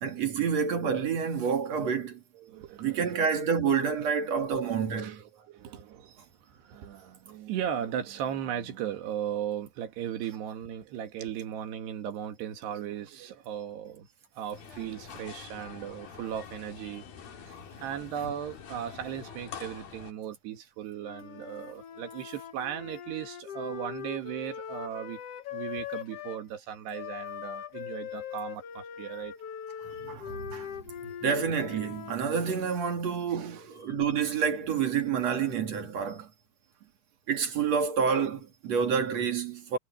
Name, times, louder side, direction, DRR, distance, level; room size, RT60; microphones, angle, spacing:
voice 1, 0.0-2.2 2.8-5.2 18.2-18.3 29.8-30.7 31.2-36.3 37.3-39.8, right 6 dB, 45° right, 3.0 m, -28 dB
voice 2, 2.4-3.2 4.6-14.1 14.4-17.0 17.4-25.2 25.5-29.3 31.0-31.2 33.3-33.6 36.8-36.9, right 9 dB, 85° right, 4.0 m, -37 dB
sound 1, 14.5-20.1, left 7 dB, 65° left, 4.5 m, -46 dB
Wind instrument woodwind instrument, 21.0-26.4 26.9-32.8, left 9 dB, 80° left, 1.3 m, -41 dB
omnidirectional pair, 4.6 m